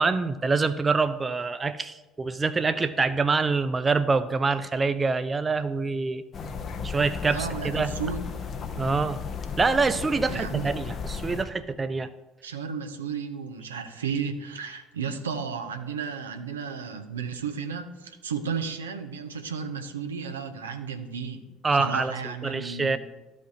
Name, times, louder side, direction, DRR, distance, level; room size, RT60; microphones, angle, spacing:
voice 1, 0.0-6.2 6.8-7.9 8.8-9.2 9.6-12.1 21.6-22.1 22.4-23.0, right 4 dB, 25° right, 12 dB, 0.4 m, -25 dB
sound 1, 6.3-11.4, left 5 dB, 40° left, 0.7 m, -35 dB
voice 2, 7.3-8.2 10.3-10.7 12.4-21.4 21.7-23.0, right 6 dB, 80° right, 6 dB, 0.6 m, -33 dB
13.5 x 5.1 x 2.7 m, 1.1 s
figure-of-eight pair, 55°, 0 cm